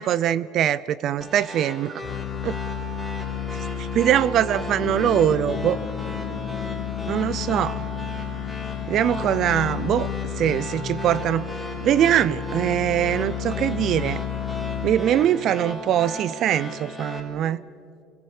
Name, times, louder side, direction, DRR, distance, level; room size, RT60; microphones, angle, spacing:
voice 1, 0.0-1.9 2.4-2.6 3.8-5.8 7.1-7.8 8.9-10.1 10.4-11.5 11.8-14.2 14.8-17.6, right 10 dB, 55° right, 19 dB, 0.5 m, -22 dB
sound 1, 1.2-17.2, equal, ahead, 4.6 m, -36 dB
sound 2, 2.0-15.4, left 11 dB, 50° left, 1.2 m, -32 dB
Bass guitar, 4.8-8.9, left 11 dB, 70° left, 2.4 m, -38 dB
26.5 x 21.0 x 7.3 m, 2.4 s
supercardioid pair, 105°, 0 cm